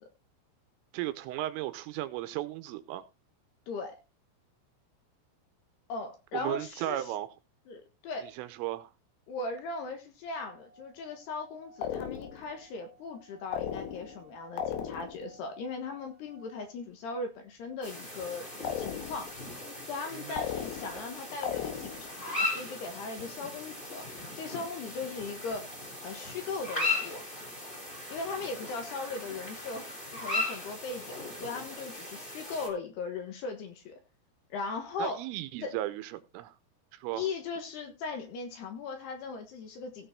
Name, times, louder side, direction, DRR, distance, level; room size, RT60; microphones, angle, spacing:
voice 1, 0.9-3.0 6.3-7.3 8.2-8.9 20.1-20.4 35.0-36.5 36.9-37.2, right 14 dB, 80° right, 3.3 m, -35 dB
voice 2, 5.9-7.1 7.7-8.3 9.3-18.5 18.8-19.4 19.8-24.1 24.4-25.7 26.0-27.2 28.1-34.0 34.5-35.3 35.6-35.7 37.1-40.1, left 4 dB, 65° left, 2.9 m, -38 dB
Singing / Glass, 10.3-16.9, right 3 dB, 55° right, 3.4 m, -57 dB
sound 1, 11.8-12.5 13.5-14.2 14.6-15.3 18.6-19.4 20.4-21.1 21.4-22.2, left 9 dB, 85° left, 2.0 m, -36 dB
sound 2, 17.8-32.7, left 2 dB, 15° left, 2.5 m, -38 dB
16.5 x 5.7 x 4.2 m
omnidirectional pair, 6.0 m